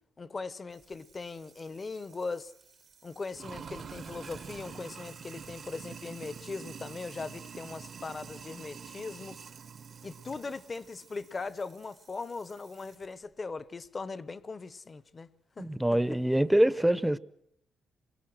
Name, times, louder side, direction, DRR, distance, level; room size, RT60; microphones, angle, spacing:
voice 1, 0.2-2.5 3.0-9.4 10.0-15.3 15.6-15.8, left 4 dB, 30° left, 1.0 m, -39 dB
Sink (filling or washing), 0.7-13.1, right 6 dB, 50° right, 1.0 m, -48 dB
voice 2, 15.6-17.2, right 1 dB, 5° right, 0.8 m, -25 dB
27.5 x 22.5 x 6.2 m
cardioid pair, 90°, 0 cm